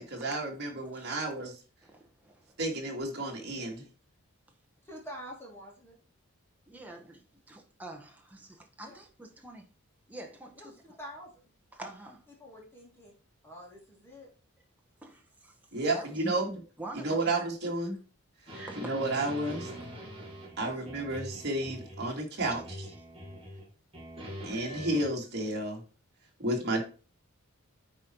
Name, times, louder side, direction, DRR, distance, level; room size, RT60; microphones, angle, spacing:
voice 1, 0.0-1.5 2.6-3.9 15.7-16.6 16.9-18.0 18.4-19.7 20.6-22.9 24.4-25.8 26.4-26.8, right 2 dB, 50° right, 2.4 m, -32 dB
voice 2, 0.9-1.3 1.8-2.6 6.7-9.7 10.1-11.0 11.7-12.3 15.0-15.6 15.9-16.4 16.8-17.5 18.5-18.9, right 2 dB, 5° right, 1.3 m, -46 dB
voice 3, 4.8-6.0 8.8-9.0 10.6-10.7 11.0-11.5 12.4-13.1 13.4-14.3 20.6-20.9, equal, 10° left, 2.8 m, -47 dB
sound 1, 18.5-22.1 22.4-23.7 23.9-25.1, equal, 25° right, 2.5 m, -43 dB
9.3 x 4.4 x 4.6 m
head